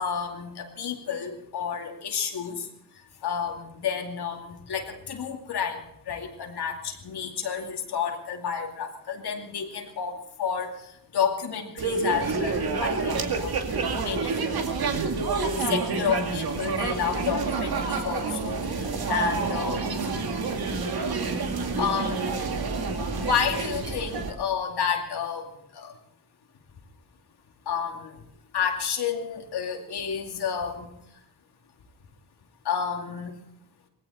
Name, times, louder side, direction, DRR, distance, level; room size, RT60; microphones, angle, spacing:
voice 1, 0.0-2.7 3.2-5.8 6.1-10.7 11.1-13.6 14.0-14.4 15.7-20.0 21.8-22.2 22.9-25.9 27.7-28.1 28.5-30.9 32.6-33.3, left 7 dB, 85° left, 3 dB, 2.6 m, -30 dB
sound 1, 11.8-24.3, right 4 dB, 70° right, 2.3 m, -28 dB
20.0 x 16.5 x 4.3 m, 0.75 s
cardioid pair, 75°, 38 cm